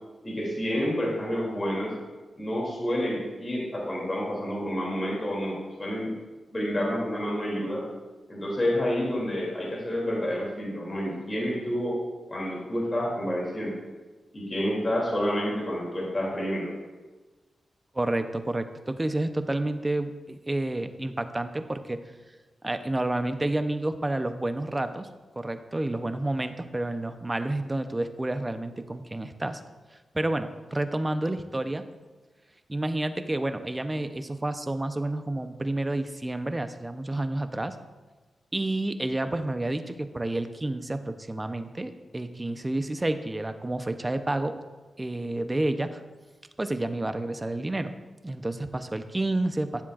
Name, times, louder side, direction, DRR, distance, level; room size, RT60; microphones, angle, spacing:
voice 1, 0.2-1.9 2.4-6.1 6.5-7.8 8.3-12.0 12.3-13.7 14.3-16.7, equal, 30° left, -3 dB, 2.8 m, -29 dB
voice 2, 17.9-22.0 22.6-25.1 25.4-29.6 30.1-31.9 32.7-37.8 38.5-44.6 45.0-46.0 46.6-47.9 48.2-49.8, right 2 dB, 25° right, 9 dB, 0.7 m, -30 dB
14.0 x 7.3 x 2.5 m, 1.2 s
cardioid pair, 55°, 0 cm